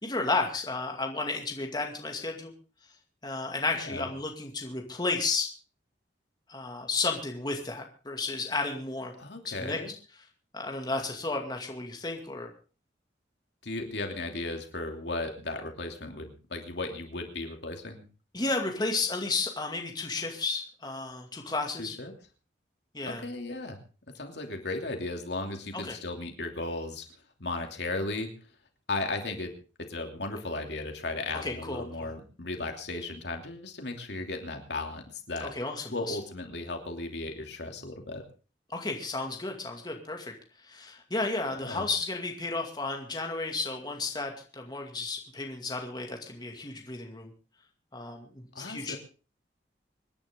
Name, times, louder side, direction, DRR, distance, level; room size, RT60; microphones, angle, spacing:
voice 1, 0.0-2.5 3.2-5.5 6.5-9.1 9.5-9.8 10.5-12.5 18.3-22.0 22.9-23.3 25.7-26.0 31.4-32.1 35.4-36.2 38.7-40.3 40.6-47.3 47.9-49.0, left 3 dB, 25° left, 2 dB, 2.3 m, -33 dB
voice 2, 9.2-9.9 13.6-18.0 21.8-22.1 23.1-23.8 24.2-27.0 27.4-28.3 28.9-29.5 29.9-35.5 35.9-38.2 41.6-41.9 48.5-49.0, left 2 dB, 70° left, 4 dB, 2.9 m, -35 dB
26.0 x 10.5 x 3.7 m, 0.36 s
head